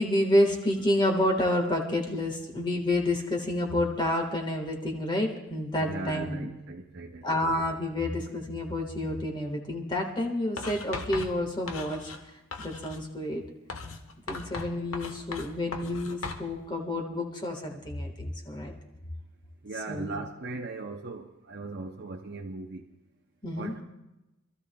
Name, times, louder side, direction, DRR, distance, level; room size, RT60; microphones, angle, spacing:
voice 1, 0.0-6.5 7.2-12.0 12.6-13.4 14.3-18.7 19.9-20.2 23.4-23.7, left 1 dB, 20° left, 2 dB, 1.6 m, -29 dB
voice 2, 5.8-7.3 19.6-22.9 23.6-23.8, right 3 dB, 50° right, 1 dB, 0.7 m, -38 dB
Writing, 10.6-12.2 12.5-13.1 13.7-16.5, left 3 dB, 85° left, 1.2 m, -38 dB
27.0 x 13.5 x 2.3 m, 0.94 s
head